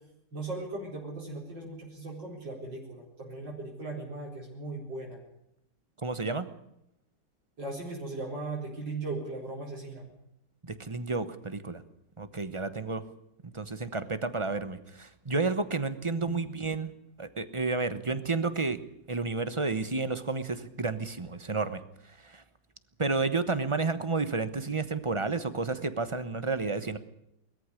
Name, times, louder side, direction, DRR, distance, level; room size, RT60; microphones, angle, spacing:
voice 1, 0.3-5.2 7.6-10.1 16.1-16.4, right 2 dB, 75° right, -3 dB, 5.0 m, -38 dB
voice 2, 6.0-6.5 10.6-11.8 12.2-13.0 13.5-16.9 17.2-18.8 19.1-21.8 22.3-22.4 23.0-27.0, right 3 dB, 20° right, 12 dB, 0.8 m, -31 dB
21.0 x 14.0 x 9.8 m, 0.78 s
omnidirectional pair, 2.0 m